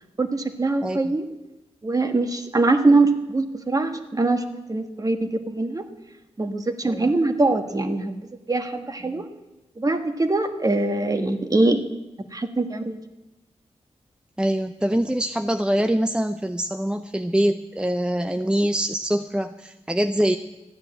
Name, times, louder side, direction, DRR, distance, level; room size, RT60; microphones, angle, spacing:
voice 1, 0.2-1.2 1.8-4.4 4.7-5.9 6.4-9.3 9.8-11.8 12.3-13.0, right 2 dB, 30° right, 6 dB, 1.4 m, -23 dB
voice 2, 14.4-20.4, right 1 dB, 10° right, 8 dB, 0.6 m, -24 dB
13.5 x 9.5 x 7.6 m, 1.0 s
cardioid pair, 75°, 12 cm